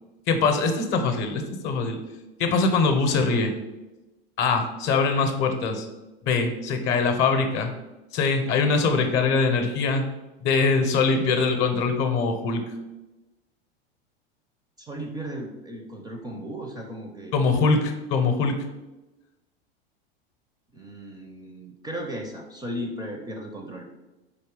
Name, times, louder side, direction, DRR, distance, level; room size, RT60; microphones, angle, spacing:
voice 1, 0.3-2.0 2.4-3.5 4.4-5.9 6.2-7.7 8.1-10.0 10.4-12.7 17.3-18.7, left 4 dB, 40° left, 6 dB, 0.6 m, -23 dB
voice 2, 14.8-17.3 20.7-23.9, equal, 15° right, 2 dB, 0.4 m, -36 dB
4.1 x 2.7 x 3.6 m, 1.1 s
hypercardioid pair, 90°, 30 cm